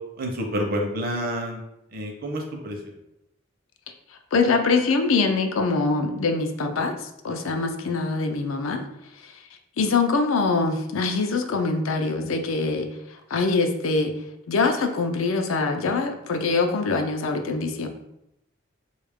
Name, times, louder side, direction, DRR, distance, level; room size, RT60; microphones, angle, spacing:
voice 1, 0.2-1.6 1.9-2.8, equal, 50° right, 2 dB, 0.6 m, -28 dB
voice 2, 4.3-8.8 9.2-9.3 9.8-12.9 13.3-14.1 14.5-17.9, left 4 dB, 90° left, 5 dB, 0.4 m, -23 dB
3.5 x 2.3 x 3.4 m, 0.84 s
head